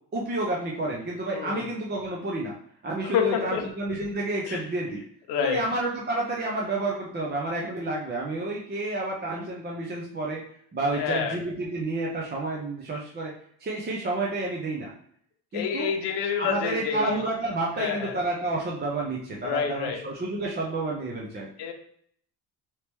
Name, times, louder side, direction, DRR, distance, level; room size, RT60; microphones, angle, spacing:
voice 1, 0.1-2.5 2.8-5.0 5.4-10.4 10.7-13.3 13.6-14.9 15.5-15.9 16.4-21.5, right 2 dB, 25° right, -2 dB, 0.6 m, -30 dB
voice 2, 1.3-1.7 3.0-3.7 4.5-4.6 5.3-5.6 10.9-11.4 15.5-17.2 17.8-18.2 19.4-20.0 21.6-21.7, left 7 dB, 80° left, 3 dB, 0.8 m, -28 dB
3.0 x 2.8 x 3.4 m, 0.65 s
cardioid pair, 125°, 41 cm